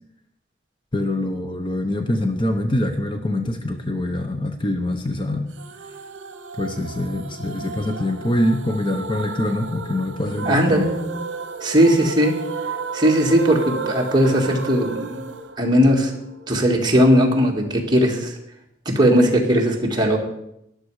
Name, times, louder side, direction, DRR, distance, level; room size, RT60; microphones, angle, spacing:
voice 1, 0.9-5.5 6.6-10.9, left 1 dB, 25° left, 6 dB, 0.9 m, -24 dB
sound 1, 5.6-16.5, right 4 dB, 80° right, 0.9 m, -33 dB
voice 2, 10.5-11.1 11.6-12.4 12.9-15.3 15.6-16.1 16.5-18.3 18.9-20.2, equal, 25° right, 0 dB, 2.0 m, -18 dB
13.5 x 11.5 x 4.9 m, 0.80 s
head